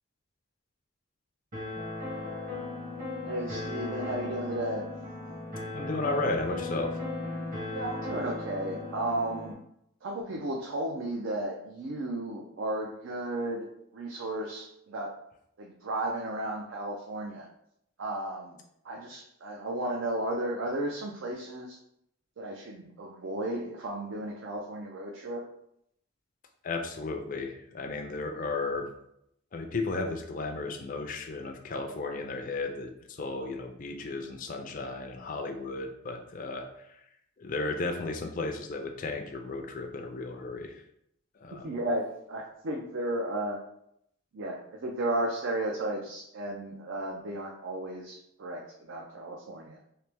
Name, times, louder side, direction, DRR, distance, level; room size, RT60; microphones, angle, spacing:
sound 1, 1.5-9.5, left 2 dB, 40° right, 1.1 m, -37 dB
voice 1, 3.2-4.8 7.7-9.5 10.0-13.7 13.9-15.1 15.6-17.5 18.0-18.6 18.8-21.8 22.4-25.4 41.6-42.0 42.3-43.6 44.3-49.8, right 1 dB, 65° right, 0 dB, 0.4 m, -34 dB
voice 2, 5.7-7.0 26.6-28.9 29.5-37.0 37.4-40.8 41.4-41.7, left 3 dB, 40° left, 3 dB, 0.4 m, -34 dB
3.2 x 2.9 x 3.3 m, 0.76 s
head